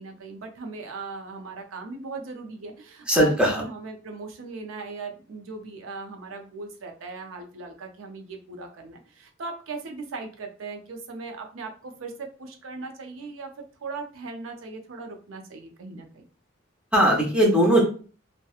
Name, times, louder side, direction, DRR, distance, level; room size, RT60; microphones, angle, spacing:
voice 1, 0.0-13.5 13.8-16.2, right 3 dB, 90° right, 4 dB, 0.5 m, -38 dB
voice 2, 3.1-3.6 16.9-17.8, right 1 dB, 5° right, -2 dB, 0.7 m, -19 dB
2.7 x 2.1 x 2.3 m, 0.39 s
head